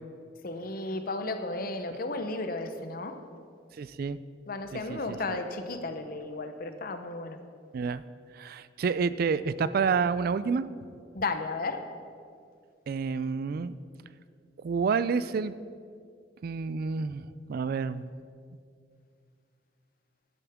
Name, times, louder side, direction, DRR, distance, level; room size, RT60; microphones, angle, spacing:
voice 1, 0.4-3.1 4.5-7.4 11.1-11.8, left 3 dB, 55° left, 8 dB, 0.8 m, -34 dB
voice 2, 3.8-4.2 4.7-5.2 7.7-8.0 8.4-10.7 12.9-13.7 14.6-15.5 16.4-17.2 17.5-18.1, right 5 dB, 55° right, 15 dB, 0.3 m, -29 dB
13.0 x 10.5 x 3.6 m, 2.3 s
head